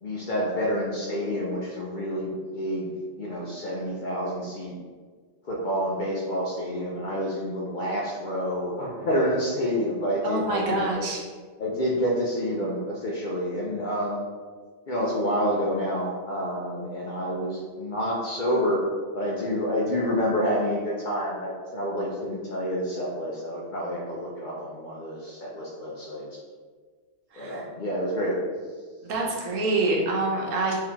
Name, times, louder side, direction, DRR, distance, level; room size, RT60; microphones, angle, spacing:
voice 1, 0.0-4.7 5.4-11.0 11.6-14.2 14.9-18.9 19.1-26.3 27.3-28.4, equal, 55° left, -3 dB, 0.5 m, -28 dB
voice 2, 10.2-11.2 27.3-27.6 29.0-30.8, right 2 dB, 90° right, -2 dB, 1.2 m, -26 dB
3.8 x 2.7 x 2.9 m, 1.5 s
omnidirectional pair, 1.3 m